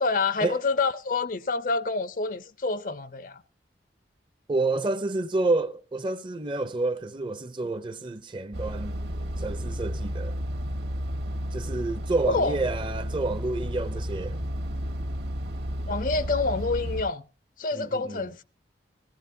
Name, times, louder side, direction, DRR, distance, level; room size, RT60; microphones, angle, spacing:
voice 1, 0.0-3.4 12.2-12.6 15.9-17.2 17.6-18.4, left 3 dB, 45° left, 0.5 m, -27 dB
voice 2, 4.5-9.0 9.4-10.4 11.5-14.4 17.8-18.3, right 2 dB, 25° right, 0.5 m, -29 dB
sound 1, 8.5-17.0, equal, 70° right, 1.5 m, -32 dB
15.5 x 14.5 x 2.7 m
head